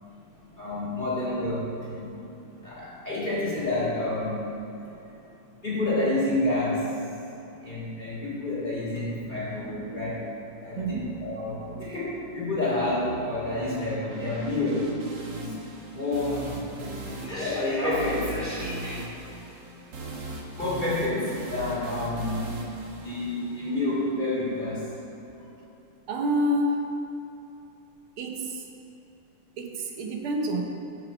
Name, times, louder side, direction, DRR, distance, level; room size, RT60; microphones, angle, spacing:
voice 1, 0.5-2.1 2.6-4.5 5.0-5.1 5.6-6.9 7.6-10.3 10.6-15.0 15.3-15.6 15.9-19.0 20.6-22.5 23.0-24.9, left 2 dB, 25° left, -8 dB, 2.4 m, -29 dB
sound 1, 9.0-24.0, right 1 dB, 60° right, 1.9 m, -39 dB
voice 2, 10.8-11.1 26.1-26.9 28.2-28.6 29.6-30.6, equal, 85° right, 2 dB, 1.9 m, -27 dB
11.5 x 6.0 x 5.2 m, 3.0 s
omnidirectional pair, 2.3 m